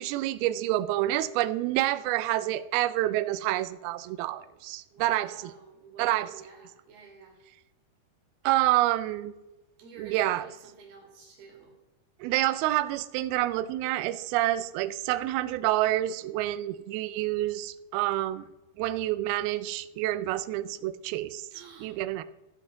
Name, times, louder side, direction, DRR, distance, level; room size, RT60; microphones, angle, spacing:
voice 1, 0.0-5.5 6.0-6.3 8.4-9.3 10.0-10.4 12.2-18.4 18.8-21.5 21.8-22.2, right 15 dB, 90° right, 13 dB, 2.2 m, -28 dB
voice 2, 4.9-7.4 9.8-11.8 21.5-22.0, right 5 dB, 65° right, 0 dB, 4.2 m, -50 dB
14.5 x 7.8 x 3.7 m, 0.99 s
omnidirectional pair, 5.0 m